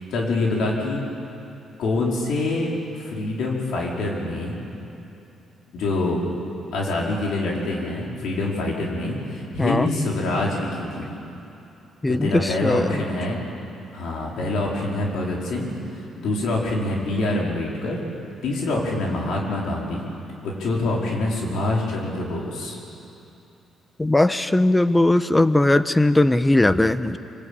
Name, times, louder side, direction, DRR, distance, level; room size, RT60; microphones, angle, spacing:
voice 1, 0.1-1.0 1.8-4.6 5.7-6.3 6.7-11.2 12.1-13.4 13.9-15.7 16.2-18.0 18.4-20.1 20.4-22.8, left 2 dB, 75° left, -3 dB, 4.7 m, -25 dB
voice 2, 12.0-12.9 24.0-27.2, left 1 dB, 15° left, 12 dB, 0.9 m, -19 dB
24.5 x 20.0 x 8.8 m, 2.9 s
cardioid pair, 90°, 0 cm